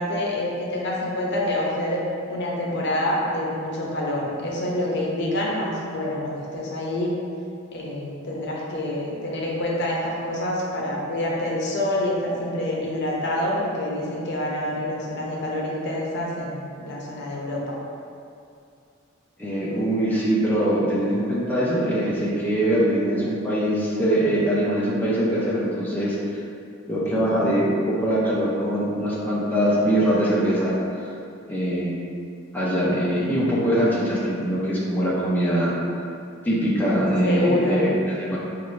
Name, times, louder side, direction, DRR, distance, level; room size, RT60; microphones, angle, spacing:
voice 1, 0.0-2.0 2.3-7.1 7.7-17.8 27.1-27.2 37.2-37.8, left 1 dB, 55° left, -3 dB, 0.7 m, -27 dB
voice 2, 19.4-26.4 26.9-31.1 31.5-31.9 32.5-35.7 36.4-38.4, right 1 dB, 10° left, -7 dB, 0.5 m, -22 dB
5.1 x 2.5 x 3.1 m, 2.5 s
head